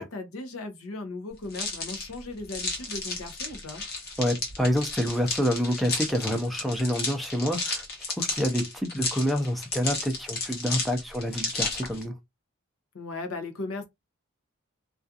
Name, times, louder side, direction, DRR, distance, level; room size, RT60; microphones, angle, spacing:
voice 1, 0.0-3.8 12.9-13.9, left 3 dB, 85° left, 0.6 m, -37 dB
sound 1, 1.5-12.0, left 3 dB, 50° left, 1.0 m, -33 dB
voice 2, 4.2-7.8 8.2-12.1, equal, ahead, 0.4 m, -27 dB
2.4 x 2.3 x 2.6 m
head